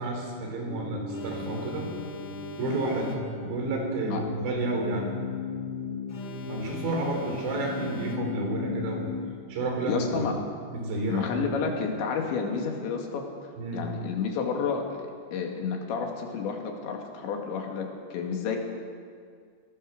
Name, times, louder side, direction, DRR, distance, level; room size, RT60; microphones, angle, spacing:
voice 1, 0.0-1.9 2.6-5.1 6.5-9.1 9.5-10.3 10.7-11.5 13.6-13.8, right 2 dB, 75° right, 1 dB, 5.8 m, -31 dB
sound 1, 0.7-9.2, left 4 dB, 50° right, 3.2 m, -36 dB
Alarm, 1.1-3.6 6.1-8.6, left 5 dB, 50° left, 1.9 m, -44 dB
voice 2, 9.9-10.4 11.1-18.6, left 5 dB, 85° left, 2 dB, 4.4 m, -31 dB
22.0 x 17.5 x 6.7 m, 2.1 s
omnidirectional pair, 5.1 m